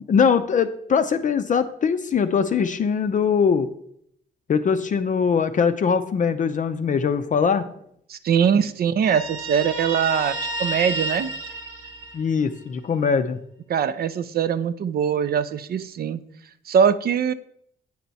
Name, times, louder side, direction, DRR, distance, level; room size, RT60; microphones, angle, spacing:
voice 1, 0.1-3.7 4.5-7.7 12.1-13.4, left 6 dB, 40° left, 9 dB, 0.5 m, -21 dB
voice 2, 8.1-10.3 10.6-11.3 13.7-16.2 16.7-17.3, right 7 dB, 50° right, 15 dB, 0.5 m, -22 dB
Guitar, 9.0-12.6, right 2 dB, 85° right, 1.2 m, -31 dB
8.5 x 4.5 x 4.1 m, 0.70 s
cardioid pair, 90°, 20 cm